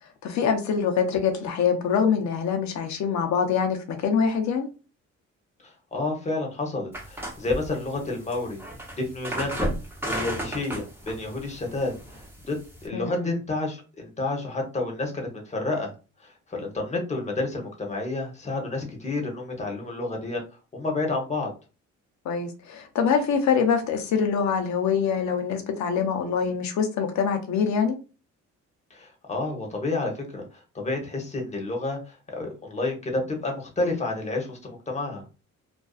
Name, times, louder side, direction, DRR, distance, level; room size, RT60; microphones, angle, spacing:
voice 1, 0.2-4.7 12.9-13.4 22.2-28.0, left 6 dB, 65° left, 0.7 m, -24 dB
voice 2, 5.6-8.6 8.9-9.7 10.0-12.5 12.8-15.9 16.2-20.4 20.7-21.5 28.9-35.3, left 2 dB, 25° left, 0.9 m, -30 dB
sound 1, 6.9-12.9, right 1 dB, 5° right, 0.8 m, -34 dB
2.5 x 2.3 x 2.3 m
cardioid pair, 90°, 30 cm